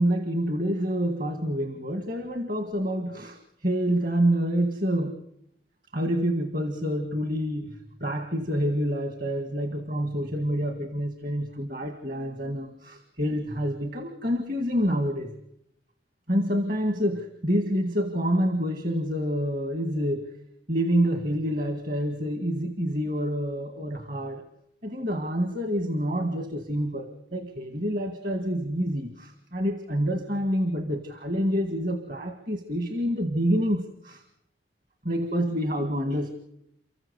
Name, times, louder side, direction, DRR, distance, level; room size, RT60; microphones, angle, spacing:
voice 1, 0.0-5.2 5.9-15.3 16.3-20.3 20.7-24.4 24.8-34.2 35.0-36.3, equal, 45° right, 8 dB, 1.9 m, -27 dB
29.5 x 14.5 x 8.1 m, 0.75 s
head